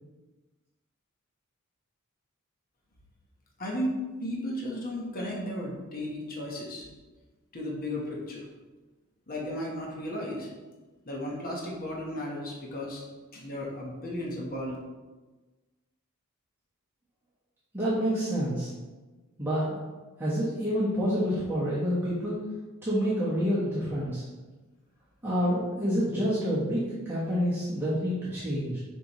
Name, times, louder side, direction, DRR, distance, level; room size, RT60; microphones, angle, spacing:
voice 1, 3.6-6.8 7.5-8.5 9.3-10.5 11.1-13.0 13.3-14.8, left 1 dB, 40° left, -2 dB, 1.2 m, -34 dB
voice 2, 17.7-18.7 19.4-19.7 20.2-22.4 22.8-24.2 25.2-28.8, equal, 10° right, -10 dB, 1.3 m, -28 dB
6.8 x 5.1 x 3.1 m, 1.2 s
head